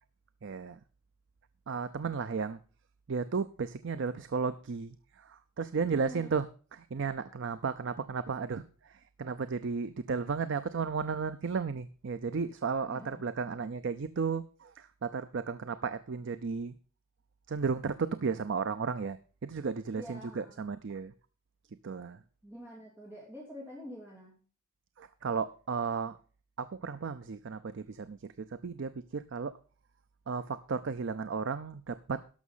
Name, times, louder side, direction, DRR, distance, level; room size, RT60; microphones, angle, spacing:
voice 1, 0.4-0.8 1.7-2.6 3.1-4.9 5.2-6.5 6.7-8.6 9.2-16.7 17.5-19.2 19.4-21.1 21.8-22.2 25.0-26.2 26.6-28.2 28.6-29.5 30.3-32.3, right 5 dB, 55° right, 12 dB, 0.5 m, -34 dB
voice 2, 5.9-6.3 12.9-13.3 19.9-20.6 22.4-24.4, equal, 10° right, -5 dB, 2.8 m, -47 dB
12.5 x 6.0 x 5.5 m, 0.38 s
head